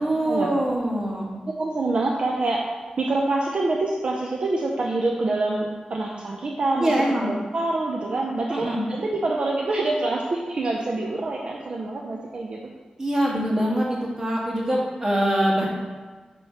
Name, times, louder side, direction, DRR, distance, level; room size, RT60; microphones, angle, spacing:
voice 1, 0.0-1.4 6.8-7.3 8.5-8.9 13.0-15.7, right 1 dB, 25° right, -4 dB, 1.4 m, -23 dB
voice 2, 1.5-2.6 3.0-6.9 7.2-12.6, right 2 dB, 50° right, -2 dB, 0.6 m, -26 dB
7.8 x 3.1 x 5.6 m, 1.4 s
wide cardioid pair, 160°, 2 cm